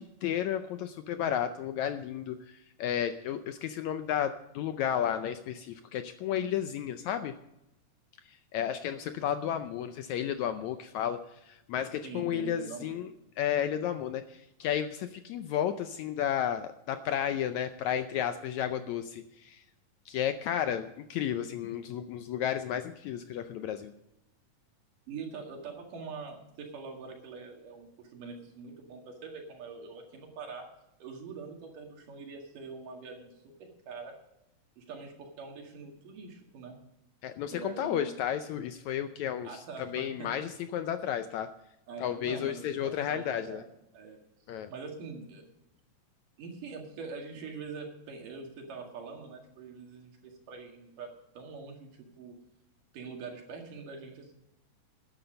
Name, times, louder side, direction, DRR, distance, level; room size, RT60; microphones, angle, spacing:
voice 1, 0.0-7.3 8.3-13.1 13.4-19.6 20.1-23.9 37.2-41.5 42.0-43.6 44.5-44.7, left 9 dB, 80° left, 9 dB, 1.7 m, -32 dB
voice 2, 12.0-13.0 25.1-30.7 31.0-34.1 34.8-36.8 37.5-38.1 39.4-40.3 41.9-43.7 43.9-44.2 44.7-45.4 46.4-51.1 51.4-51.9 52.2-52.3 52.9-54.3, right 4 dB, 75° right, 2 dB, 3.7 m, -44 dB
12.5 x 10.0 x 5.2 m, 0.86 s
omnidirectional pair, 3.9 m